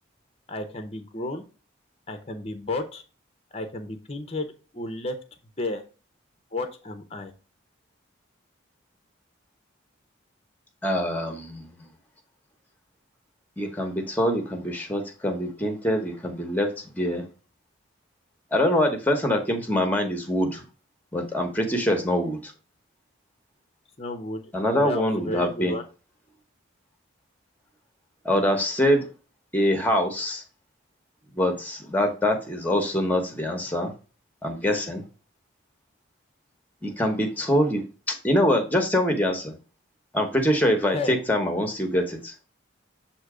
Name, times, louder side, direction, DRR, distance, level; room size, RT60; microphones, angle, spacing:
voice 1, 0.5-1.4 2.1-3.0 3.5-4.5 4.7-5.2 5.6-5.8 6.5-7.3 24.0-25.8 40.9-41.1, left 2 dB, 30° left, 8 dB, 0.8 m, -32 dB
voice 2, 10.8-11.7 13.6-16.7 17.0-17.2 18.5-20.6 21.1-22.5 24.5-25.8 28.2-29.1 29.5-30.4 31.3-33.9 34.4-35.0 36.8-37.8 38.1-39.6 40.1-42.3, equal, 10° left, 5 dB, 1.1 m, -24 dB
7.9 x 2.9 x 4.9 m, 0.34 s
head